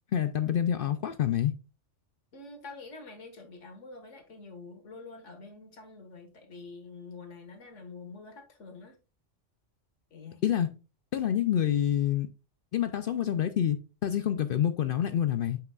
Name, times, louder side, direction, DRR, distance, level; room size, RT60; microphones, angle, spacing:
voice 1, 0.1-1.5 10.4-10.7 11.1-12.3 12.7-15.6, left 10 dB, 60° left, 0.6 m, -27 dB
voice 2, 2.3-9.0 10.1-10.4, left 3 dB, 85° left, 1.8 m, -46 dB
7.8 x 5.8 x 2.3 m
omnidirectional pair, 1.2 m